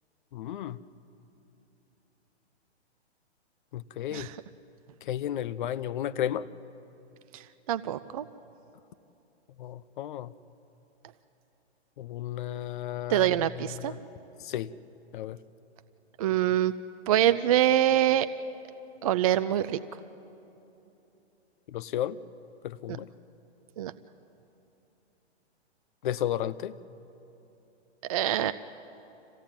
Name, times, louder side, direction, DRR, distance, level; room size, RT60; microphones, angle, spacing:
voice 1, 0.3-0.8 3.7-4.3 5.0-6.5 9.6-10.3 12.0-14.0 14.4-14.7 15.1-15.4 21.7-22.2 22.6-23.1 26.0-26.7, left 11 dB, 45° left, 15 dB, 0.7 m, -33 dB
voice 2, 7.3-8.3 13.1-13.9 16.2-16.7 17.1-18.3 19.0-19.8 23.8-23.9 28.1-28.5, right 12 dB, 35° right, 13 dB, 0.4 m, -25 dB
26.0 x 16.5 x 8.9 m, 3.0 s
hypercardioid pair, 145°, 33 cm